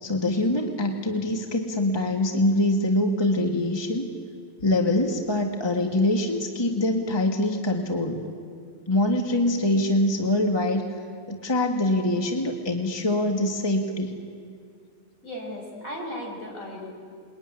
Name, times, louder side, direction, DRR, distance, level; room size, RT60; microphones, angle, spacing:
voice 1, 0.0-4.1 4.6-8.2 8.9-10.8 11.3-14.1, left 1 dB, 15° left, 3 dB, 1.7 m, -24 dB
voice 2, 15.2-16.9, equal, 65° left, 0 dB, 5.9 m, -36 dB
27.5 x 21.5 x 9.9 m, 2.3 s
omnidirectional pair, 1.6 m